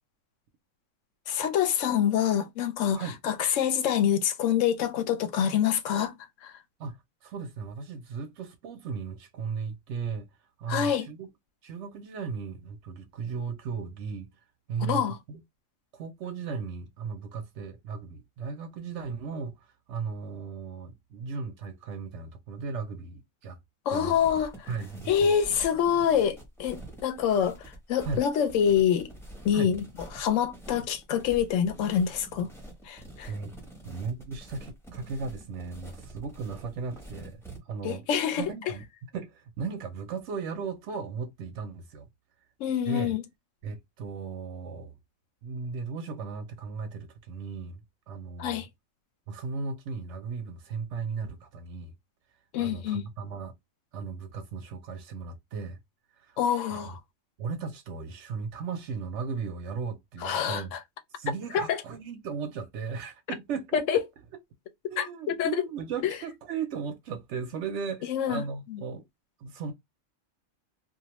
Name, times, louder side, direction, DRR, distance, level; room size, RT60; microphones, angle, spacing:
voice 1, 1.3-6.1 6.4-6.5 10.7-11.1 14.8-15.2 23.9-24.7 25.1-29.1 29.4-29.8 30.1-32.5 32.8-33.3 37.8-38.5 42.6-43.2 48.4-48.7 52.5-53.0 56.4-57.0 60.2-60.8 61.5-61.8 63.7-64.0 65.0-65.6 66.0-66.2 68.1-68.4 68.7-68.8, left 8 dB, 70° left, 0.9 m, -26 dB
voice 2, 6.8-10.3 10.6-11.3 11.6-14.3 14.7-15.4 15.9-23.6 23.9-24.3 24.7-25.4 28.1-28.2 29.5-29.7 33.3-33.5 33.8-38.1 38.4-38.8 39.1-42.1 42.9-43.1 43.6-44.9 45.4-48.6 49.3-51.9 52.6-53.5 53.9-55.8 56.2-56.4 56.7-57.0 57.4-60.7 61.1-64.0 64.9-69.0 69.4-69.7, right 5 dB, 65° right, 0.8 m, -36 dB
sound 1, 23.9-37.6, right 1 dB, ahead, 0.7 m, -46 dB
2.5 x 2.2 x 2.9 m
omnidirectional pair, 1.4 m